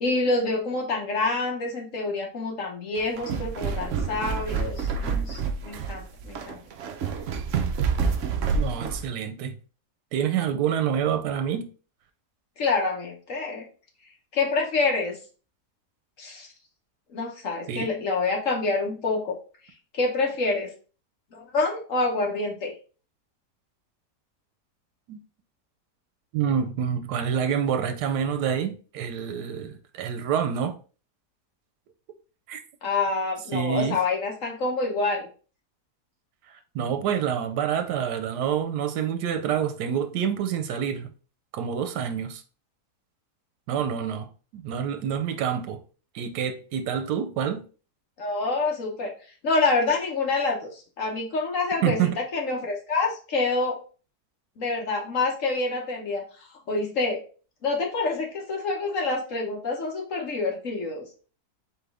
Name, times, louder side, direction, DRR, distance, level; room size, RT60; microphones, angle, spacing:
voice 1, 0.0-6.6 12.6-13.7 14.3-15.2 16.2-16.5 17.1-19.4 19.9-20.7 21.3-22.7 32.8-35.3 48.2-49.1 49.4-52.0 52.3-53.8 54.6-57.2 57.6-61.1, left 3 dB, 55° left, 1.3 m, -27 dB
sound 1, 3.0-9.0, right 5 dB, 65° right, 0.8 m, -28 dB
voice 2, 8.5-9.5 10.1-11.7 17.7-17.9 25.1-25.2 26.3-30.7 32.5-32.6 33.5-34.0 36.5-41.1 41.5-42.4 43.7-45.8 46.1-47.6 51.8-52.1, right 8 dB, 85° right, 1.2 m, -27 dB
4.2 x 3.4 x 3.4 m
omnidirectional pair, 1.8 m